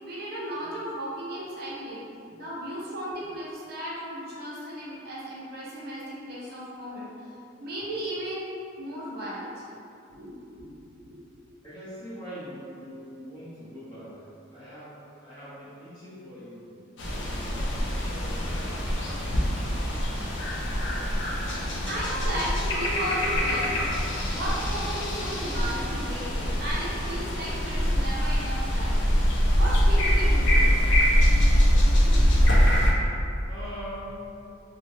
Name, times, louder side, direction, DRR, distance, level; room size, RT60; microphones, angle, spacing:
voice 1, 0.0-2.1 2.3-7.1 7.6-8.5 8.8-9.6 10.1-10.3 10.6-10.7 11.0-11.2 17.5-17.6 21.8-23.7 24.3-30.6 31.9-32.2 32.6-33.3, right 1 dB, 55° right, -7 dB, 0.6 m, -35 dB
voice 2, 11.6-16.8 17.4-20.1 33.5-34.2, equal, 20° left, -12 dB, 1.1 m, -43 dB
sound 1, 17.0-32.9, equal, 65° left, 0.5 m, -24 dB
2.8 x 2.6 x 2.7 m, 2.5 s
head